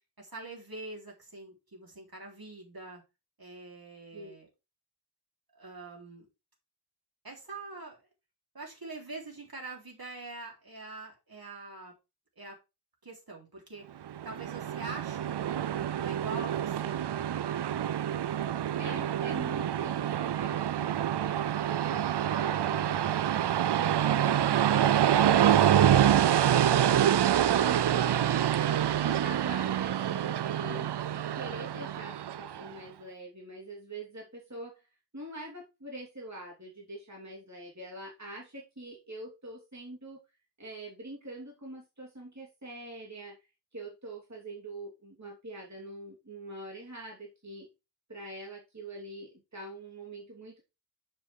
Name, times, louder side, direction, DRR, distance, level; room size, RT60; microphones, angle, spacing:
voice 1, 0.2-3.0 3.4-4.5 5.5-6.3 7.2-8.0 8.5-11.9 12.4-12.6 13.0-17.0, right 3 dB, 60° right, -2 dB, 3.8 m, -44 dB
Train, 14.1-32.7, right 10 dB, 75° right, 0.5 m, -26 dB
voice 2, 18.8-23.3 23.8-28.5 29.0-34.9 35.1-40.2 40.6-43.4 43.7-47.7 48.1-50.6, right 1 dB, 40° right, -2 dB, 3.2 m, -44 dB
7.3 x 5.5 x 4.7 m, 0.26 s
wide cardioid pair, 60°, 41 cm